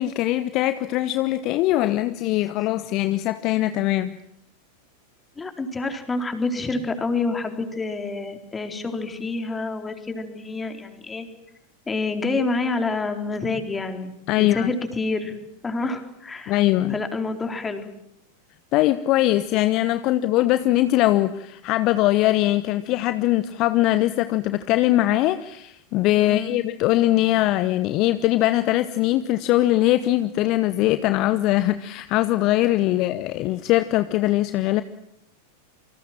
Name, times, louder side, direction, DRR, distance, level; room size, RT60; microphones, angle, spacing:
voice 1, 0.0-4.2 14.3-14.7 16.5-17.0 18.7-34.8, left 15 dB, 40° left, 13 dB, 1.0 m, -21 dB
voice 2, 5.4-11.3 11.9-14.1 14.4-15.4 15.6-16.6 16.9-17.9 26.2-26.6, left 3 dB, 15° left, 6 dB, 4.0 m, -28 dB
28.0 x 25.0 x 7.5 m, 0.75 s
figure-of-eight pair, 90°, 0 cm